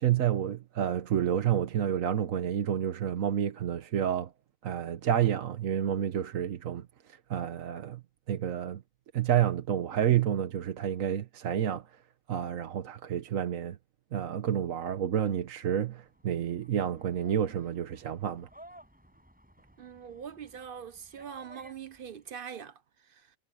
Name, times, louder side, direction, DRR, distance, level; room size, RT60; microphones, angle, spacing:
voice 1, 0.0-4.3 4.6-8.0 8.3-8.8 9.1-11.9 12.3-13.8 14.1-18.5, right 10 dB, 75° right, 1.3 m, -29 dB
sound 1, 15.9-22.3, right 1 dB, 5° right, 6.7 m, -56 dB
voice 2, 19.8-23.3, right 7 dB, 50° right, 0.8 m, -43 dB
omnidirectional pair, 1.4 m